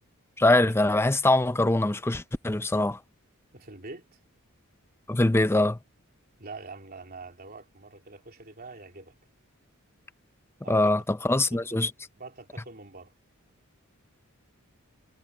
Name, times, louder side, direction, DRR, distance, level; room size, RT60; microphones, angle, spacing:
voice 1, 0.4-3.0 5.1-5.8 10.7-11.9, left 2 dB, 10° left, 0.6 m, -23 dB
voice 2, 3.5-4.2 6.4-9.2 10.6-11.0 11.3-11.7 12.2-13.1, right 3 dB, 45° right, 3.3 m, -45 dB
head